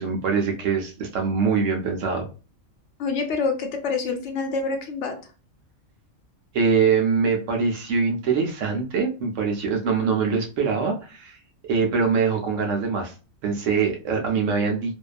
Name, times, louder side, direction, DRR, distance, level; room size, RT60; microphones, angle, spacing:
voice 1, 0.0-2.3 6.5-11.4 11.7-13.1 13.4-14.9, right 5 dB, 70° right, 2 dB, 0.9 m, -23 dB
voice 2, 3.0-5.1, left 4 dB, 65° left, 5 dB, 0.8 m, -26 dB
2.6 x 2.2 x 2.4 m, 0.35 s
omnidirectional pair, 1.4 m